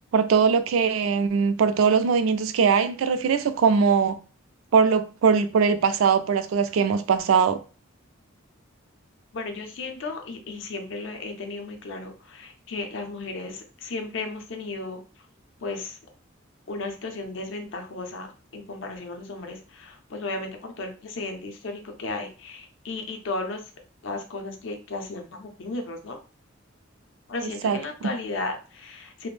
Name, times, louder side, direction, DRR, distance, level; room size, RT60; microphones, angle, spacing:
voice 1, 0.1-4.2 4.7-7.6 27.4-27.8, right 6 dB, 85° right, 0.3 m, -21 dB
voice 2, 9.3-15.0 15.6-16.0 16.7-23.6 24.0-26.2 27.3-29.3, left 3 dB, 65° left, 0.5 m, -34 dB
2.5 x 2.0 x 3.1 m
head